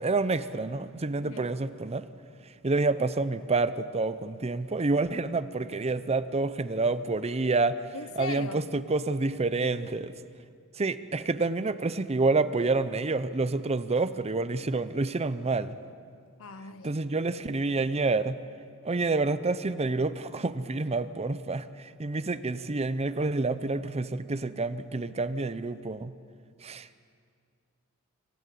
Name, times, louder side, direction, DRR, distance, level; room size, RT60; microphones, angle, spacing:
voice 1, 0.0-2.0 2.6-7.8 8.1-10.1 10.8-15.8 16.8-18.4 18.8-26.1 26.6-26.9, right 3 dB, 30° right, 0.6 m, -28 dB
voice 2, 7.9-8.6 16.4-16.9, left 3 dB, 65° left, 0.9 m, -38 dB
26.0 x 15.0 x 8.5 m
head